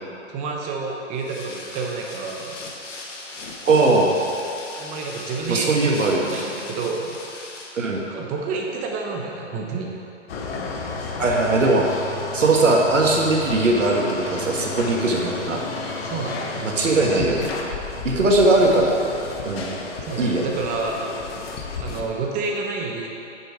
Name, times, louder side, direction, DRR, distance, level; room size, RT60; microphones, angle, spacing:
voice 1, 0.3-2.6 4.8-7.2 7.9-9.9 16.0-16.6 20.0-21.1 21.8-23.1, right 4 dB, 20° right, 0 dB, 1.0 m, -29 dB
sound 1, 1.1-7.8, left 3 dB, 75° left, 1.5 m, -38 dB
voice 2, 3.6-4.1 5.5-6.3 7.7-8.0 11.2-12.0 12.3-15.6 16.6-17.5 18.0-18.9 19.4-19.8 20.2-20.5, right 2 dB, 90° right, -1 dB, 1.7 m, -19 dB
sound 2, 10.3-22.1, left 4 dB, 55° left, 1.2 m, -32 dB
8.5 x 6.8 x 4.7 m, 2.8 s
hypercardioid pair, 140°, 37 cm